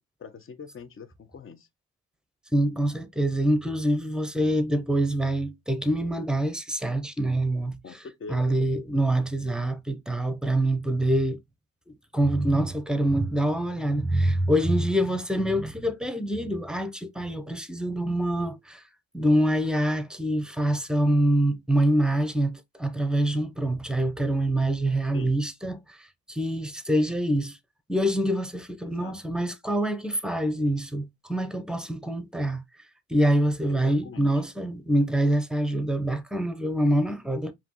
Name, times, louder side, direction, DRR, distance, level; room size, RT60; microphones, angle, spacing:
voice 1, 0.2-1.7 7.8-8.6 25.1-25.3 28.8-29.2 33.7-34.4, left 5 dB, 45° left, 0.9 m, -43 dB
voice 2, 2.5-7.8 8.3-11.4 11.9-18.8 19.1-27.6 27.9-32.6 33.1-37.5, right 1 dB, 5° right, 0.8 m, -25 dB
5.0 x 2.9 x 3.0 m
cardioid pair, 90°, 30 cm